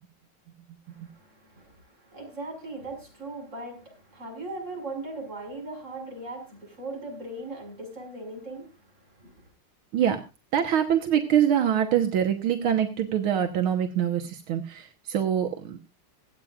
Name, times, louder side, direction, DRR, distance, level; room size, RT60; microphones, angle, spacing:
voice 1, 0.9-8.8 9.1-9.5, right 2 dB, 35° right, 1 dB, 6.4 m, -39 dB
voice 2, 10.5-15.8, right 9 dB, 85° right, 4 dB, 2.0 m, -24 dB
25.5 x 8.7 x 2.5 m, 0.28 s
omnidirectional pair, 2.3 m